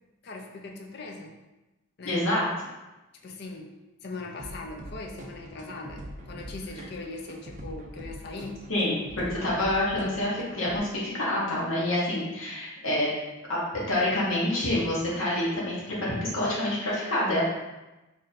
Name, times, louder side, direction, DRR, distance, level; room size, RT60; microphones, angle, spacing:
voice 1, 0.2-1.4 2.0-2.2 3.2-3.7 4.0-8.6, left 3 dB, 55° left, 2 dB, 0.5 m, -40 dB
voice 2, 2.0-2.5 8.7-13.1 13.5-17.5, left 1 dB, 80° left, -6 dB, 1.1 m, -27 dB
sound 1, 4.4-10.8, right 1 dB, 40° right, 0.4 m, -43 dB
3.1 x 2.6 x 4.0 m, 1.0 s
head